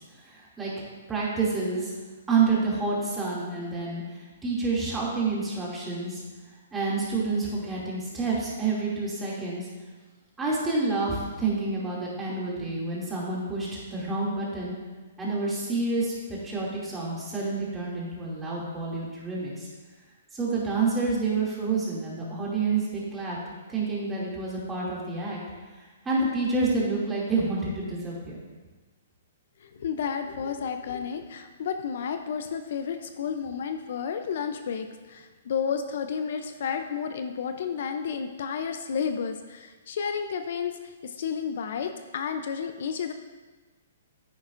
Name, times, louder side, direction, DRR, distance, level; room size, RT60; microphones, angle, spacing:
voice 1, 0.3-0.7 1.1-1.9 2.3-4.0 4.4-6.2 6.7-9.7 10.4-14.7 15.2-19.7 20.3-23.4 23.7-25.4 26.0-28.5, right 3 dB, 10° right, -6 dB, 2.6 m, -28 dB
voice 2, 29.6-43.1, left 7 dB, 60° left, 7 dB, 0.6 m, -31 dB
9.9 x 9.3 x 2.6 m, 1.3 s
hypercardioid pair, 150°, 0 cm